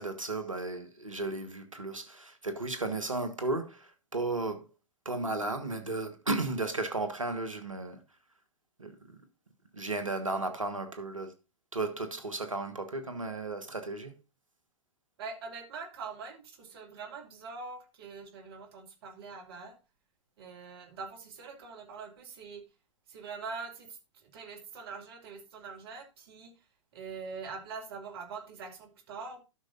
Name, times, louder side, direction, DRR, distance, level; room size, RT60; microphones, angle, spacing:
voice 1, 0.0-4.7 5.0-8.0 8.8-8.9 9.7-11.3 11.7-14.1, right 2 dB, 85° right, 1.2 m, -34 dB
voice 2, 15.2-19.7 20.4-22.6 23.1-26.6 26.9-29.4, right 5 dB, 50° right, 2.4 m, -43 dB
12.5 x 6.3 x 2.5 m
figure-of-eight pair, 105°, 16 cm